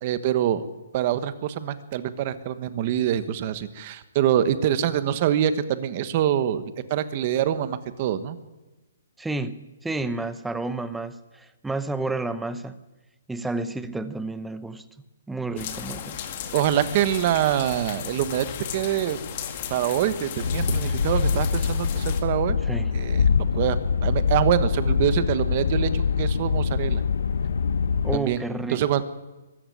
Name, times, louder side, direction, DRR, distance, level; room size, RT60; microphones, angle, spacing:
voice 1, 0.0-0.7 0.9-8.4 16.5-18.5 18.7-19.2 19.7-22.6 22.9-23.2 23.5-27.0 28.1-28.4 28.7-29.0, right 11 dB, 25° right, 13 dB, 1.2 m, -25 dB
voice 2, 9.2-12.8 13.3-14.9 15.3-16.2 22.7-22.9 28.0-28.8, right 2 dB, 5° right, 12 dB, 0.7 m, -30 dB
sound 1, 15.6-22.2, left 8 dB, 30° left, 2.0 m, -35 dB
sound 2, 20.4-28.2, left 6 dB, 70° left, 0.9 m, -24 dB
23.0 x 14.0 x 9.4 m, 1.1 s
hypercardioid pair, 175°, 0 cm